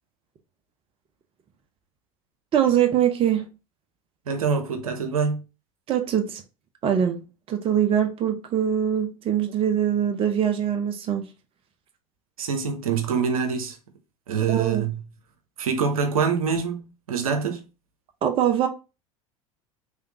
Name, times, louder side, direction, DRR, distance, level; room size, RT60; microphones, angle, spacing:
voice 1, 2.5-3.5 5.9-6.4 6.8-11.3 14.5-14.8 18.2-18.7, right 9 dB, 30° right, 0.7 m, -23 dB
voice 2, 4.3-5.4 12.4-13.8 14.3-15.0 15.6-17.7, right 6 dB, 75° right, 0.8 m, -25 dB
3.5 x 3.4 x 2.8 m
figure-of-eight pair, 75°, 18 cm